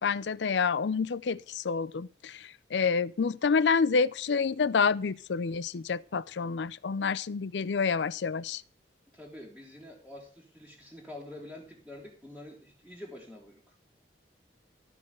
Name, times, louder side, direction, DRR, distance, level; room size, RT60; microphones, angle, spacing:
voice 1, 0.0-8.6, left 5 dB, 80° left, 0.5 m, -28 dB
voice 2, 9.1-13.8, left 1 dB, ahead, 2.0 m, -47 dB
13.5 x 5.5 x 7.8 m
head